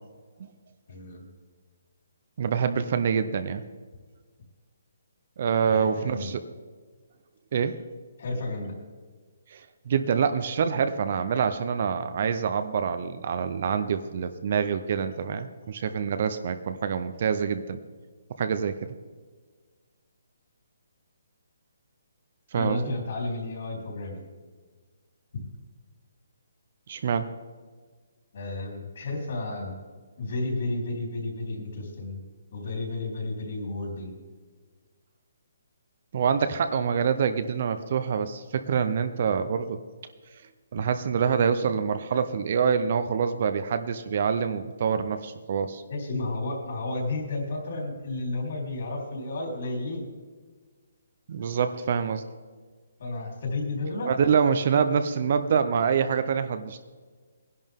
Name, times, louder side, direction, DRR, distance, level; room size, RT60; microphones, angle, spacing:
voice 1, 0.9-1.2 5.6-6.3 8.2-8.7 22.5-24.2 28.3-29.8 30.2-32.2 32.5-34.2 45.9-50.1 53.0-54.1, left 2 dB, 45° left, 0 dB, 3.8 m, -32 dB
voice 2, 2.4-3.6 5.4-6.4 7.5-7.8 9.5-17.8 18.4-18.9 22.5-23.0 26.9-27.3 36.1-39.8 40.7-45.8 51.3-52.2 54.1-56.8, right 6 dB, 35° right, 10 dB, 0.5 m, -26 dB
19.0 x 11.0 x 3.6 m, 1.5 s
hypercardioid pair, 180°, 0 cm